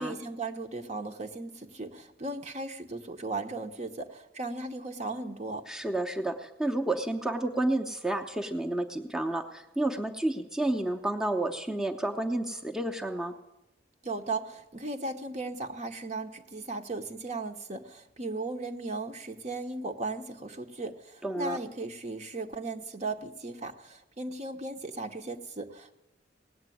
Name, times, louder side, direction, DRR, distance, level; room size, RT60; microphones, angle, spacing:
voice 1, 0.0-5.7 14.0-26.0, right 3 dB, 40° right, 5 dB, 1.0 m, -37 dB
voice 2, 5.7-13.3 21.2-21.6, right 1 dB, 5° right, 2 dB, 0.8 m, -30 dB
18.0 x 8.1 x 9.3 m, 0.96 s
head